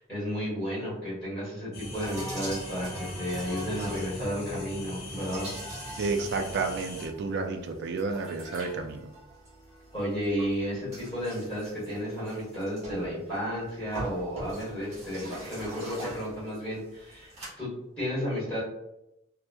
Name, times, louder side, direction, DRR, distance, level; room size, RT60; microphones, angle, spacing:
voice 1, 0.0-5.5 9.9-17.7 18.0-18.6, equal, 5° left, -9 dB, 1.2 m, -32 dB
sound 1, 1.7-7.1, left 1 dB, 50° left, 0.6 m, -40 dB
sound 2, 1.9-17.5, right 1 dB, 35° right, 1.0 m, -44 dB
voice 2, 6.0-9.1, right 4 dB, 55° right, 5 dB, 0.3 m, -31 dB
2.9 x 2.1 x 2.2 m, 0.88 s
head